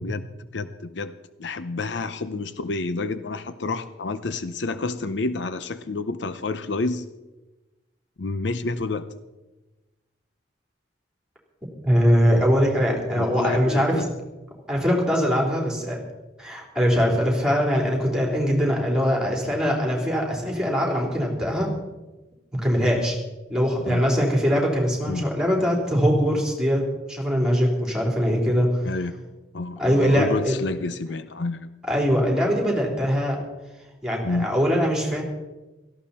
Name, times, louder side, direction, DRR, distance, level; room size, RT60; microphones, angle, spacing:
voice 1, 0.0-7.1 8.2-9.1 13.1-14.1 23.8-24.0 25.1-25.2 28.8-29.2 29.5-31.7 34.2-34.5, left 3 dB, 65° left, 12 dB, 0.7 m, -29 dB
voice 2, 11.8-14.1 14.7-16.0 16.4-21.7 22.5-23.2 23.5-26.8 27.1-28.8 29.8-30.6 31.9-33.4 34.0-35.2, equal, 5° right, -1 dB, 3.8 m, -22 dB
17.5 x 14.5 x 4.3 m, 1.1 s
head